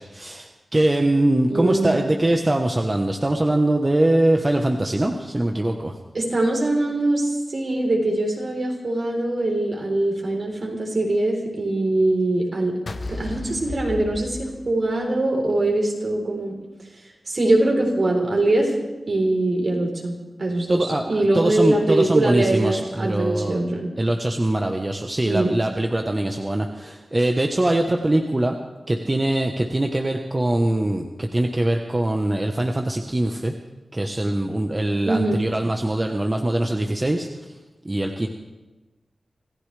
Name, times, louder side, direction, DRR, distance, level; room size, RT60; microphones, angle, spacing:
voice 1, 0.0-5.9 20.7-23.7 24.0-28.6 28.9-33.5 33.9-37.3 37.8-38.3, right 1 dB, 25° right, 3 dB, 1.1 m, -22 dB
voice 2, 1.5-2.0 6.1-12.7 13.1-16.6 17.3-18.7 19.1-20.1 20.4-23.9 25.2-25.5 35.0-35.4, right 2 dB, 60° right, 0 dB, 4.0 m, -22 dB
sound 1, 12.9-15.2, left 3 dB, 55° left, 1.0 m, -34 dB
26.5 x 15.0 x 3.4 m, 1.1 s
wide cardioid pair, 70°, 0 cm